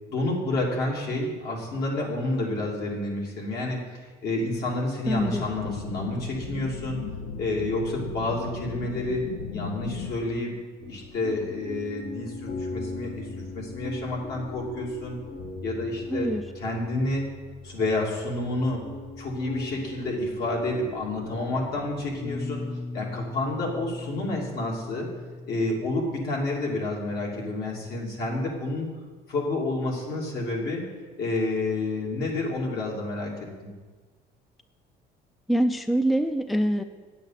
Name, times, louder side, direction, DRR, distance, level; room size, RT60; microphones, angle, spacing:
voice 1, 0.1-7.0 7.4-9.2 9.5-10.5 10.9-13.3 13.5-15.2 15.6-17.2 17.6-18.8 19.2-22.6 22.9-25.1 25.5-28.9 29.3-30.8 31.2-33.3, left 2 dB, 70° left, -2 dB, 2.7 m, -29 dB
sound 1, 5.1-10.1, left 6 dB, 90° left, 0.7 m, -36 dB
voice 2, 5.1-5.7 16.1-16.4 35.5-36.8, right 1 dB, ahead, 9 dB, 0.4 m, -25 dB
sound 2, 10.8-28.6, left 3 dB, 45° left, 1.0 m, -39 dB
9.1 x 7.8 x 5.7 m, 1.4 s
cardioid pair, 110°, 17 cm